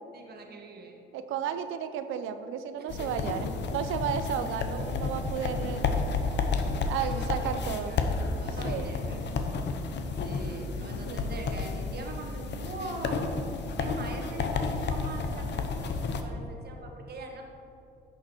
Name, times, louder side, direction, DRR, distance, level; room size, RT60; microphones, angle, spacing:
voice 1, 0.1-1.0 2.8-3.1 7.0-8.0 8.4-9.2 10.2-13.3 13.8-17.4, right 2 dB, 55° right, 2 dB, 1.5 m, -42 dB
voice 2, 1.1-5.9 6.9-8.0 8.6-8.9 11.1-11.3, right 8 dB, 90° right, 10 dB, 0.6 m, -33 dB
sound 1, 2.9-16.2, left 4 dB, 60° left, 0.9 m, -31 dB
10.5 x 6.6 x 4.5 m, 2.7 s
cardioid pair, 90°, 20 cm